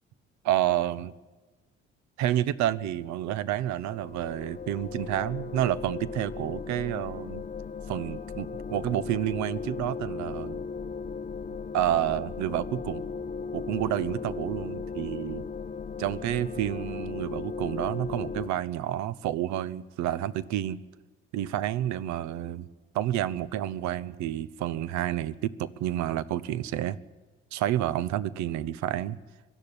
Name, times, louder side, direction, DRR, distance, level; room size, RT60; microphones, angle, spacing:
voice 1, 0.4-1.1 2.2-7.4 7.9-10.6 11.5-13.0 13.5-15.5 16.0-20.8 21.3-22.7 22.9-27.0 27.5-29.2, right 12 dB, 65° right, 19 dB, 0.9 m, -29 dB
sound 1, 3.6-18.5, left 5 dB, 25° left, 0.9 m, -37 dB
23.5 x 12.0 x 10.0 m, 1.2 s
hypercardioid pair, 55°, 30 cm